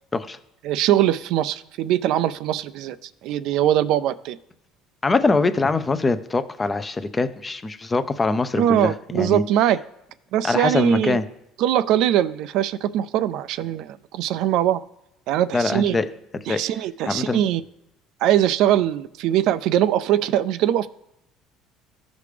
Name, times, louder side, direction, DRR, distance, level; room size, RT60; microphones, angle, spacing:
voice 1, 0.6-3.0 3.2-4.4 8.6-9.8 10.3-11.2 11.6-14.8 15.3-16.0 16.5-17.6 18.2-20.9, right 11 dB, 70° right, 13 dB, 0.3 m, -21 dB
voice 2, 5.0-9.4 10.4-11.2 15.5-16.1 16.5-16.6 17.0-17.4, left 3 dB, 20° left, 11 dB, 0.5 m, -23 dB
14.5 x 5.1 x 3.3 m, 0.85 s
cardioid pair, 130°, 0 cm